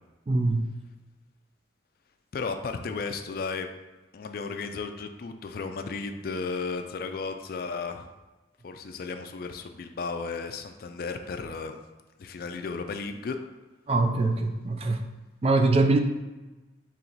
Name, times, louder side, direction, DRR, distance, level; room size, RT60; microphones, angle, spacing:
voice 1, 0.3-0.7 13.9-15.0 15.4-16.0, right 2 dB, 30° right, 5 dB, 0.3 m, -23 dB
voice 2, 2.3-3.7 4.1-8.1 8.6-11.8 12.2-13.4, left 4 dB, 50° left, 7 dB, 0.3 m, -34 dB
4.4 x 3.1 x 3.9 m, 1.2 s
head